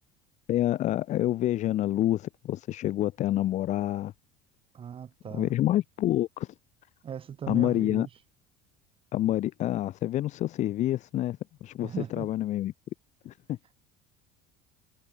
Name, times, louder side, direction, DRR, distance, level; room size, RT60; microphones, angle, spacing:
voice 1, 0.5-4.1 5.3-6.5 7.5-8.1 9.1-12.7 13.2-13.8, left 13 dB, 50° left, 2.3 m, -28 dB
voice 2, 4.7-5.5 7.0-8.1 11.8-12.3, right 8 dB, 35° right, 7.2 m, -38 dB
supercardioid pair, 110°, 15 cm